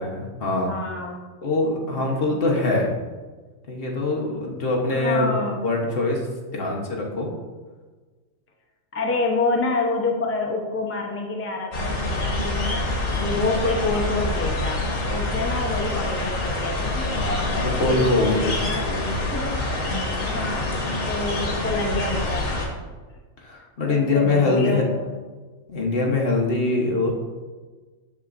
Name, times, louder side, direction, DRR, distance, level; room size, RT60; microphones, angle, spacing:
voice 1, 0.0-0.7 1.4-2.9 3.7-7.3 17.1-19.2 19.7-20.0 23.4-24.8 25.7-27.1, left 2 dB, 45° left, -1 dB, 1.2 m, -24 dB
voice 2, 0.7-1.3 2.0-2.4 4.9-5.6 8.9-19.7 20.2-20.7 21.1-22.5 23.9-25.1, left 2 dB, 20° left, 0 dB, 0.4 m, -28 dB
sound 1, 11.7-22.7, left 2 dB, 70° left, 1.7 m, -26 dB
7.2 x 6.9 x 2.5 m, 1.3 s
omnidirectional pair, 1.4 m